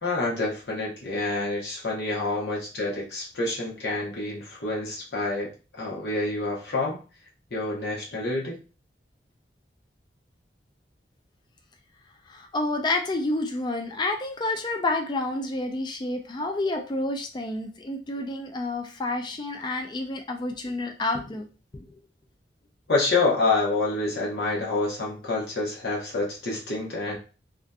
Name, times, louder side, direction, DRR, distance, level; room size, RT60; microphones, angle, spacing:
voice 1, 0.0-7.0 7.5-8.6 22.9-27.2, left 2 dB, 65° left, -4 dB, 0.9 m, -27 dB
voice 2, 12.3-21.5 21.7-22.0, left 2 dB, 25° left, 4 dB, 0.3 m, -29 dB
2.7 x 2.4 x 2.2 m, 0.34 s
head